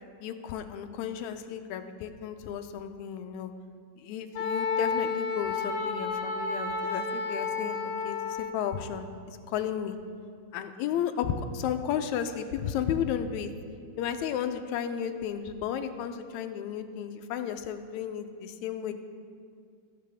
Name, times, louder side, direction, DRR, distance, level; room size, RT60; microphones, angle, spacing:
voice 1, 0.2-3.5 4.0-10.0 10.5-13.5 14.0-18.9, left 8 dB, 85° left, 8 dB, 1.9 m, -33 dB
Wind instrument woodwind instrument, 4.3-8.6, left 4 dB, 65° left, 2.3 m, -31 dB
14.5 x 12.5 x 3.5 m, 2.3 s
omnidirectional pair, 3.3 m